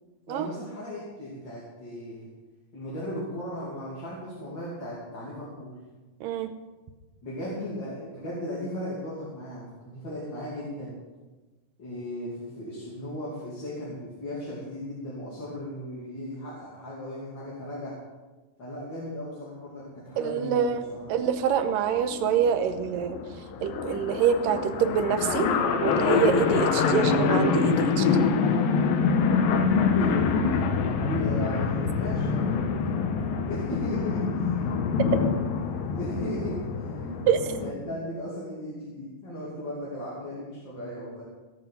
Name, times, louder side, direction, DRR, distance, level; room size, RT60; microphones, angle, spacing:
voice 1, 0.3-2.3 2.7-5.8 7.2-10.9 11.8-18.0 18.6-21.1 29.5-32.6 33.4-34.8 35.9-41.2, left 1 dB, 35° left, -7 dB, 2.9 m, -36 dB
voice 2, 20.2-20.8 21.1-23.2 23.6-28.1 37.3-37.4, right 8 dB, 85° right, 8 dB, 2.5 m, -25 dB
sound 1, 21.2-21.3 21.6-21.7 21.9-37.7, left 5 dB, 85° left, 2.7 m, -25 dB
17.5 x 6.9 x 5.9 m, 1.2 s
omnidirectional pair, 4.0 m